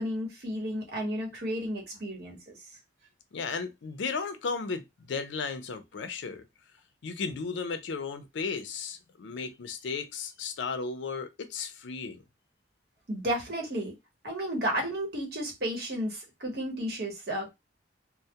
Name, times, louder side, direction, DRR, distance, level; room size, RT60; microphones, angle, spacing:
voice 1, 0.0-2.4 13.1-13.9 14.2-17.5, equal, 55° right, 0.9 m, -32 dB
voice 2, 3.3-6.4 7.0-12.2, left 5 dB, 80° left, 0.4 m, -35 dB
2.2 x 2.0 x 2.7 m
head